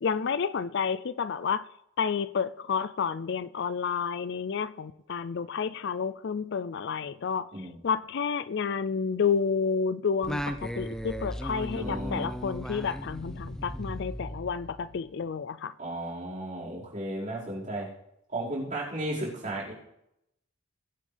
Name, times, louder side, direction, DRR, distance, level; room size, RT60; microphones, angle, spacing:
voice 1, 0.0-1.6 2.0-7.5 7.8-15.7, left 6 dB, 55° left, 0.4 m, -30 dB
Singing, 10.2-15.0, equal, 5° left, 0.6 m, -36 dB
voice 2, 11.7-12.3 15.8-17.9 18.3-19.7, right 1 dB, 35° right, 5.0 m, -34 dB
22.0 x 8.7 x 3.4 m
head